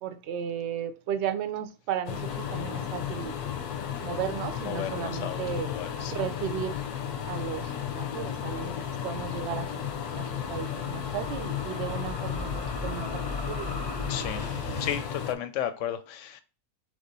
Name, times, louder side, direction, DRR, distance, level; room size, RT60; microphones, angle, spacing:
voice 1, 0.0-3.4 4.0-5.7 6.1-6.8 7.3-12.5 12.8-13.7, right 9 dB, 65° right, 0.7 m, -35 dB
sound 1, 2.1-15.3, left 9 dB, 90° left, 1.1 m, -34 dB
voice 2, 4.6-6.2 14.1-14.5 14.8-16.4, left 10 dB, 70° left, 0.8 m, -34 dB
sound 2, 8.3-15.0, left 1 dB, 35° left, 0.4 m, -40 dB
3.7 x 3.5 x 3.9 m
omnidirectional pair, 1.6 m